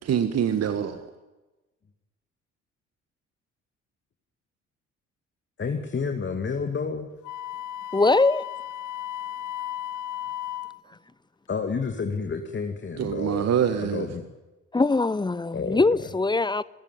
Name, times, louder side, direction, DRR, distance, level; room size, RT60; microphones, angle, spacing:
voice 1, 0.0-1.1 13.0-14.1, right 8 dB, 45° right, 1.5 m, -25 dB
voice 2, 5.6-7.1 11.5-13.5 13.8-14.2 15.5-16.1, left 5 dB, 30° left, 2.2 m, -30 dB
Wind instrument woodwind instrument, 7.2-10.8, left 12 dB, 55° left, 0.9 m, -35 dB
voice 3, 7.9-8.4 14.7-16.6, left 3 dB, 10° left, 0.7 m, -22 dB
28.5 x 15.0 x 9.7 m
figure-of-eight pair, 45°, 36 cm